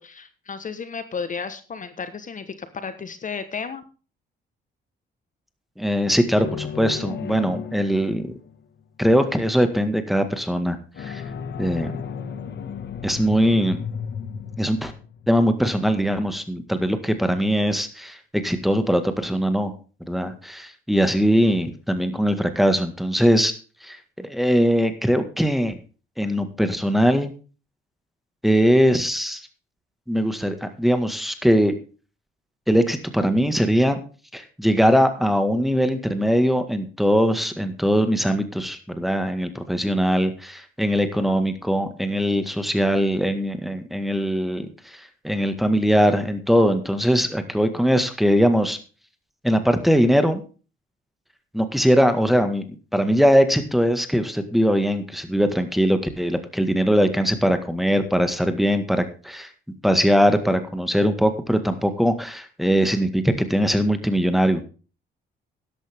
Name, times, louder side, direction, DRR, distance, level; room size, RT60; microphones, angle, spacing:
voice 1, 0.0-3.8, left 5 dB, 40° left, 11 dB, 1.3 m, -33 dB
voice 2, 5.8-8.3 9.0-11.2 11.6-11.9 13.0-13.8 14.6-14.9 15.3-19.7 20.1-23.5 23.8-25.8 26.2-27.3 28.4-29.4 30.1-31.7 32.7-34.0 34.3-48.8 49.4-50.4 51.5-59.5 59.8-64.6, equal, ahead, 8 dB, 1.8 m, -21 dB
sound 1, 6.4-8.6 10.9-15.9, left 7 dB, 60° left, 1.7 m, -34 dB
13.0 x 11.0 x 3.6 m, 0.36 s
cardioid pair, 90°, 20 cm